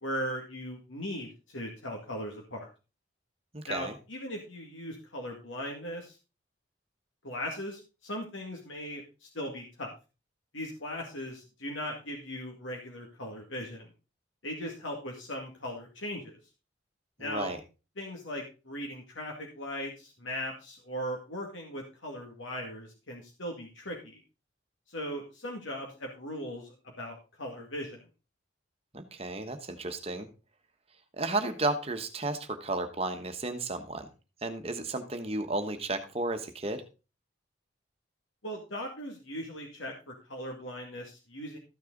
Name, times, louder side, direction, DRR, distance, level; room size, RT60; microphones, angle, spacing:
voice 1, 0.0-2.7 3.7-6.2 7.2-9.9 10.5-13.9 14.4-16.4 17.2-17.5 18.0-24.2 24.9-28.0 38.4-41.6, equal, 85° left, 1 dB, 2.2 m, -38 dB
voice 2, 3.5-3.9 17.2-17.6 28.9-30.3 31.2-34.1 34.4-36.8, right 2 dB, 30° right, 7 dB, 1.2 m, -33 dB
13.5 x 6.5 x 3.9 m, 0.31 s
head